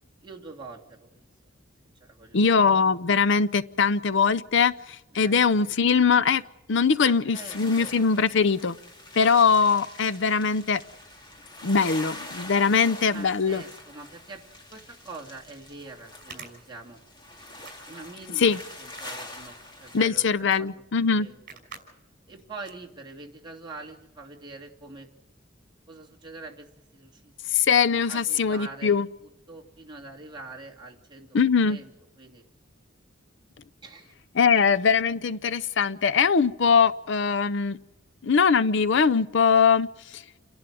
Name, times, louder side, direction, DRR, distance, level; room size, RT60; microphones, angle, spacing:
voice 1, 0.2-1.2 2.0-2.4 5.1-5.7 7.0-7.9 13.1-14.4 14.7-17.0 17.6-18.5 18.8-20.3 20.6-20.7 21.2-21.3 22.3-25.1 25.9-27.3 28.1-28.9 29.5-31.4 31.7-31.9 32.2-32.5 33.8-34.1 34.4-34.5, right 3 dB, 25° right, 2.9 m, -44 dB
voice 2, 2.3-6.4 6.7-8.8 9.2-10.8 11.6-13.6 18.4-18.6 19.9-21.3 27.5-29.1 31.3-31.8 34.4-37.8 38.2-39.9 40.1-40.2, left 5 dB, 65° left, 0.6 m, -21 dB
sound 1, 7.5-20.1, left 1 dB, 25° left, 2.4 m, -44 dB
sound 2, 15.0-15.1 16.1-17.3 17.6-18.2 18.8-19.9 20.5-20.6 20.9-21.0 21.5-21.9 22.2-22.4 22.7-23.2, right 5 dB, 45° right, 5.5 m, -46 dB
29.0 x 11.5 x 9.1 m
head